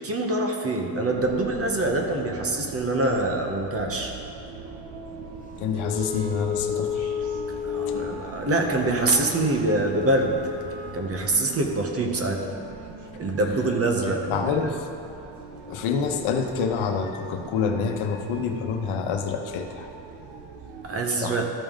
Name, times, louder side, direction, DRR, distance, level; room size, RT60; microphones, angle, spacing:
voice 1, 0.0-4.1 7.6-10.4 10.9-12.5 13.1-14.5 20.8-21.4, right 2 dB, 30° right, 2 dB, 0.8 m, -25 dB
sound 1, 1.1-21.0, right 3 dB, 60° right, 0.9 m, -41 dB
voice 2, 5.6-7.2 10.8-10.9 14.1-14.9 15.7-19.9 21.2-21.4, left 6 dB, 90° left, 4 dB, 0.9 m, -27 dB
Wind instrument woodwind instrument, 5.8-11.1, left 7 dB, 20° left, 0.3 m, -33 dB
13.5 x 5.4 x 3.7 m, 2.6 s
cardioid pair, 165°, 48 cm